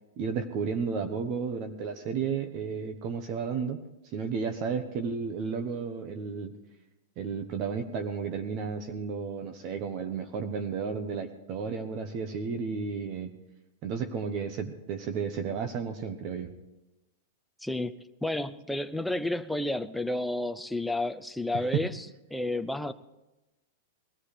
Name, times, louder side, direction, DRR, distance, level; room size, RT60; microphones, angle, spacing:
voice 1, 0.2-3.8 4.0-6.5 7.2-13.3 13.8-16.5 21.5-21.9, right 6 dB, 35° right, 1.0 m, -33 dB
voice 2, 17.6-17.9 18.2-22.1 22.3-22.9, left 1 dB, ahead, 0.5 m, -31 dB
20.0 x 14.0 x 3.4 m
supercardioid pair, 150°, 0 cm